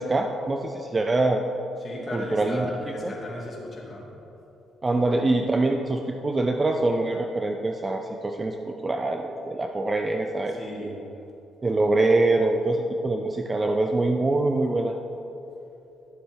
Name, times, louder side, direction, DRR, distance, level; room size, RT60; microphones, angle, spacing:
voice 1, 0.0-1.4 2.1-2.8 3.0-3.1 4.8-8.6 8.8-11.0 11.6-14.9, right 2 dB, 25° right, 4 dB, 0.5 m, -24 dB
voice 2, 1.8-4.1 10.5-10.9, left 1 dB, 30° left, -4 dB, 2.2 m, -36 dB
11.5 x 7.1 x 3.6 m, 2.9 s
cardioid pair, 90°, 0 cm